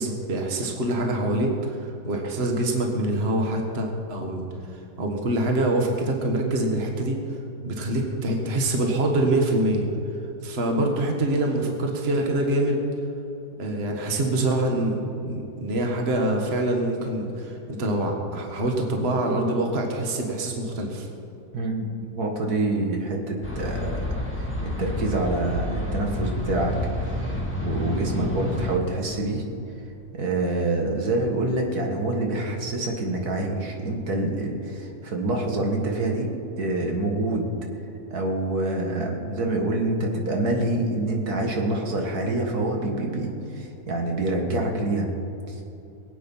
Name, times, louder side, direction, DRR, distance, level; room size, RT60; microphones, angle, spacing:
voice 1, 0.0-4.5 5.0-7.2 7.6-9.9 10.4-12.8 13.6-21.1, right 1 dB, 40° right, 2 dB, 1.7 m, -25 dB
voice 2, 21.5-21.9 22.2-26.8 27.2-27.3 27.6-29.4 30.1-36.3 36.6-37.5 38.1-45.1 45.5-45.6, right 2 dB, 70° right, 1 dB, 2.1 m, -26 dB
sound 1, 23.4-28.8, left 1 dB, 5° left, 2.4 m, -29 dB
22.0 x 8.6 x 5.5 m, 2.9 s
omnidirectional pair, 1.7 m